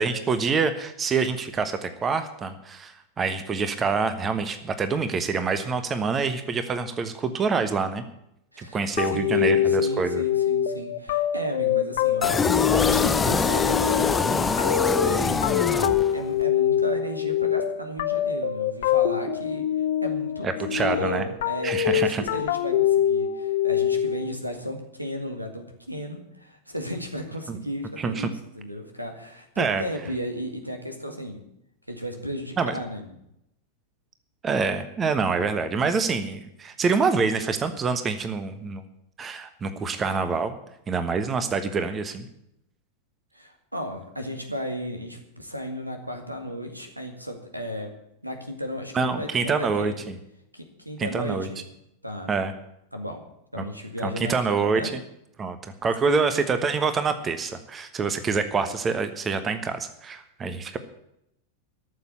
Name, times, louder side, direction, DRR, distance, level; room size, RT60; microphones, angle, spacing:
voice 1, 0.0-8.0 8.6-10.2 20.7-21.2 21.6-22.2 27.5-27.6 28.0-28.3 29.6-29.8 32.6-32.7 34.4-38.8 39.2-40.6 40.9-42.3 48.9-50.2 51.0-51.5 52.3-52.5 54.0-55.0 55.4-60.8, right 5 dB, 20° right, 10 dB, 1.2 m, -26 dB
voice 2, 8.5-31.4 31.9-33.1 43.3-47.9 48.2-50.0 50.5-51.6 52.0-52.3 52.9-53.2 53.5-54.9 56.0-56.2, equal, 85° right, 5 dB, 2.1 m, -34 dB
sound 1, 9.0-24.3, left 10 dB, 55° left, 1.0 m, -24 dB
sound 2, 12.2-16.4, left 4 dB, 15° left, 0.6 m, -24 dB
13.5 x 7.2 x 9.6 m, 0.79 s
figure-of-eight pair, 90°, 0 cm